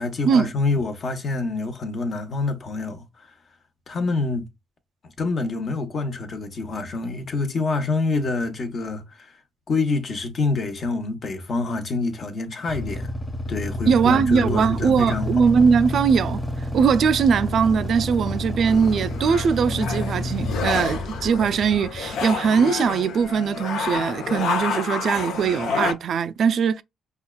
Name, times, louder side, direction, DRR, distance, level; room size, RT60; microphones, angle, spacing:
voice 1, 0.0-3.3 3.9-4.5 5.2-9.3 9.7-13.1 13.5-15.5, left 3 dB, 50° left, 0.9 m, -26 dB
Motorcycle / Idling, 12.7-22.6, left 1 dB, 20° left, 1.2 m, -29 dB
voice 2, 13.8-16.4 16.7-26.8, right 6 dB, 60° right, 0.3 m, -20 dB
sound 1, 18.7-25.9, left 5 dB, 80° left, 0.7 m, -29 dB
5.4 x 2.3 x 2.2 m
cardioid pair, 90°, 0 cm